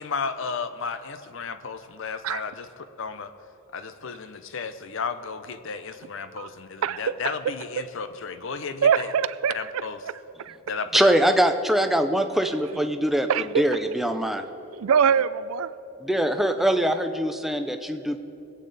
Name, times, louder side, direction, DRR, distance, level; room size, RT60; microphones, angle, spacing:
voice 1, 0.0-2.7 3.0-3.3 3.7-9.1 9.5-10.0 10.7-11.1, left 5 dB, 60° left, 10 dB, 0.6 m, -33 dB
voice 2, 8.8-9.7 10.0-10.1 10.4-10.6 13.3-13.6 14.7-15.7, right 7 dB, 75° right, 16 dB, 0.4 m, -23 dB
voice 3, 10.9-13.3 13.6-14.4 16.0-18.2, right 1 dB, ahead, 7 dB, 0.4 m, -22 dB
20.5 x 8.5 x 4.0 m, 2.8 s
head